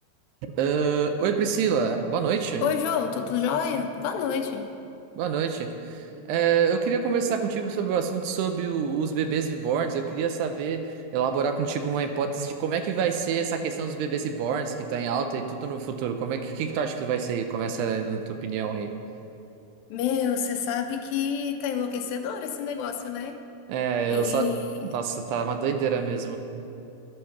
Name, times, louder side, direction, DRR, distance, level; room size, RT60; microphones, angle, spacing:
voice 1, 0.4-2.7 5.2-10.9 11.1-18.9 23.7-24.5 24.8-26.4, right 6 dB, 80° right, 6 dB, 2.7 m, -27 dB
voice 2, 2.6-4.7 19.9-23.4 24.1-24.9, left 7 dB, 80° left, 5 dB, 2.7 m, -28 dB
12.5 x 11.0 x 5.8 m, 2.6 s
omnidirectional pair, 5.1 m